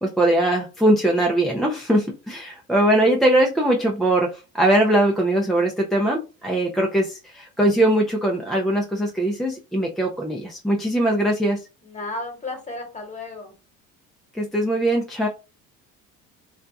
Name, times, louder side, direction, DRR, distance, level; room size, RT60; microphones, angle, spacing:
voice 1, 0.0-11.6 14.3-15.3, right 1 dB, ahead, -2 dB, 0.3 m, -21 dB
voice 2, 11.8-13.5, left 2 dB, 20° left, 2 dB, 1.2 m, -33 dB
2.6 x 2.3 x 2.2 m, 0.30 s
supercardioid pair, 95°, 36 cm